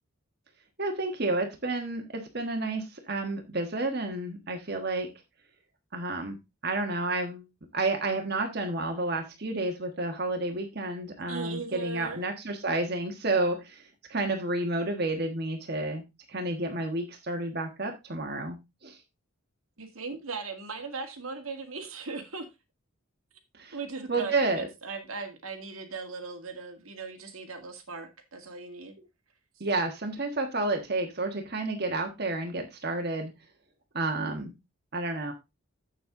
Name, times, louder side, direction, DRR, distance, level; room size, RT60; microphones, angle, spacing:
voice 1, 0.8-5.1 5.9-6.4 6.6-7.5 7.7-19.0 23.5-23.8 24.1-24.7 29.6-33.3 33.9-34.5 34.9-35.3, right 2 dB, 50° right, 1.4 m, -30 dB
voice 2, 11.3-12.2 19.8-22.5 23.7-29.0 29.6-29.7, right 4 dB, 85° right, 2.0 m, -38 dB
7.7 x 7.3 x 3.7 m
head